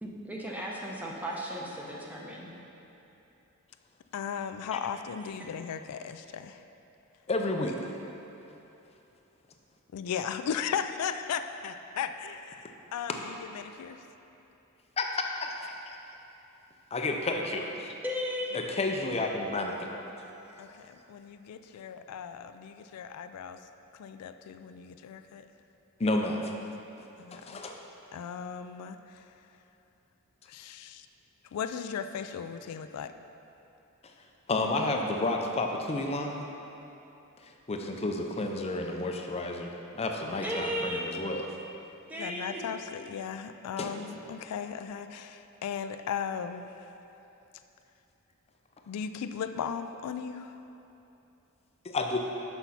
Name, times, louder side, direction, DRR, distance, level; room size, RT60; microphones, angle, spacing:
voice 1, 0.0-2.5 18.0-18.7 40.4-41.1 42.0-42.6, equal, 5° right, -3 dB, 0.8 m, -35 dB
voice 2, 4.1-6.6 9.9-13.9 20.6-23.6 24.0-25.5 27.2-27.6 28.1-29.2 30.5-31.1 31.5-33.1 42.2-46.7 48.9-50.5, left 7 dB, 85° left, 9 dB, 0.3 m, -36 dB
voice 3, 7.3-8.0 13.1-13.2 15.0-15.1 15.4-16.0 16.9-17.9 18.5-20.0 26.0-26.5 27.3-27.8 34.5-36.4 37.4-41.5 43.8-44.0 51.8-52.2, left 2 dB, 30° left, 2 dB, 0.5 m, -31 dB
6.2 x 5.5 x 5.6 m, 2.9 s
head